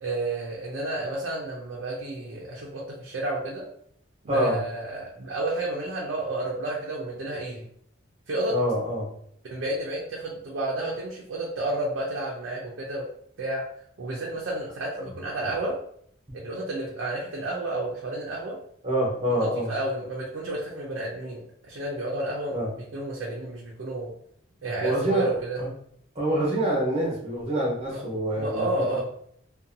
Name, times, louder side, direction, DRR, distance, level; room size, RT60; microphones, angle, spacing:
voice 1, 0.0-3.7 4.2-7.6 8.3-8.6 9.5-13.1 13.4-13.6 14.0-15.8 16.4-18.6 19.3-24.1 24.6-25.6 27.9-28.0 28.3-29.0, right 2 dB, 70° right, -3 dB, 0.5 m, -31 dB
voice 2, 8.5-9.1 18.8-19.7 22.5-22.7 24.8-25.3 25.6-25.7 26.1-28.7 28.9-29.0, equal, 30° right, -4 dB, 0.9 m, -26 dB
2.6 x 2.2 x 2.6 m, 0.68 s
head